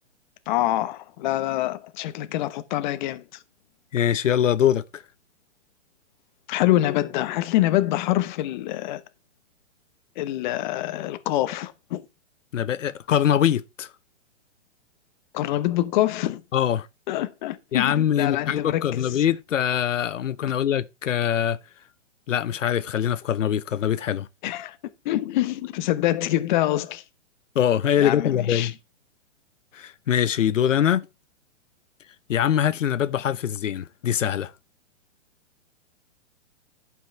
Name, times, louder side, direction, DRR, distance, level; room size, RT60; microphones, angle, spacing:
voice 1, 0.5-3.2 6.5-9.0 10.2-12.0 15.3-16.4 17.1-19.2 24.4-24.8 25.0-27.0 28.0-28.7, left 15 dB, 40° left, 0.9 m, -25 dB
voice 2, 3.9-5.0 12.5-13.9 16.5-16.9 17.7-21.6 22.3-24.3 27.5-28.7 29.7-31.1 32.3-34.5, left 10 dB, 80° left, 0.9 m, -23 dB
11.5 x 5.7 x 4.4 m
hypercardioid pair, 140°, 38 cm